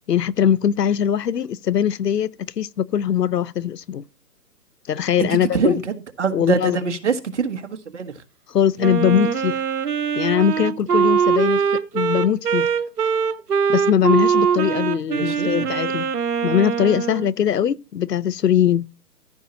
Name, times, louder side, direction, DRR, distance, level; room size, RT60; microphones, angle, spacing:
voice 1, 0.1-4.0 4.9-5.8 6.3-6.8 8.5-9.6 10.1-12.7 13.7-16.1 16.4-18.9, left 9 dB, 75° left, 0.8 m, -21 dB
voice 2, 5.3-8.1 15.2-15.7, right 5 dB, 45° right, 1.5 m, -24 dB
Wind instrument woodwind instrument, 8.8-17.3, right 7 dB, 75° right, 1.1 m, -22 dB
14.0 x 5.7 x 3.9 m
hypercardioid pair, 165°, 48 cm